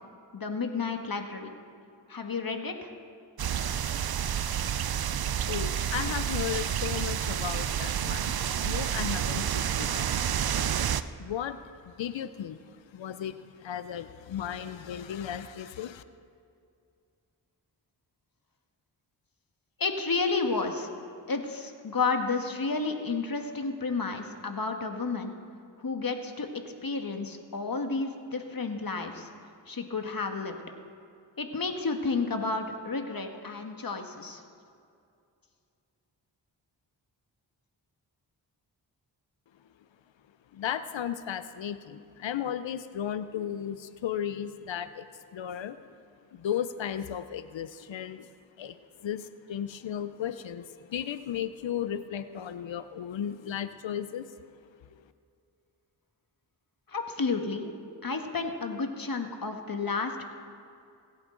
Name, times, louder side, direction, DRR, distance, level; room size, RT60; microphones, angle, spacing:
voice 1, 0.3-1.5 2.1-2.9 19.8-20.9 21.3-25.3 25.8-26.5 26.8-29.3 29.7-30.6 31.4-34.4 56.9-57.8 58.0-60.2, left 4 dB, 50° left, 5 dB, 1.6 m, -31 dB
sound 1, 3.4-11.0, right 9 dB, 55° right, 0.6 m, -29 dB
voice 2, 5.5-10.4 11.2-11.6 11.8-12.6 12.9-16.0 40.5-45.1 45.3-45.8 46.3-48.3 48.6-54.3, left 9 dB, 75° left, 12 dB, 0.7 m, -35 dB
24.0 x 8.5 x 3.9 m, 2.4 s
cardioid pair, 40°, 46 cm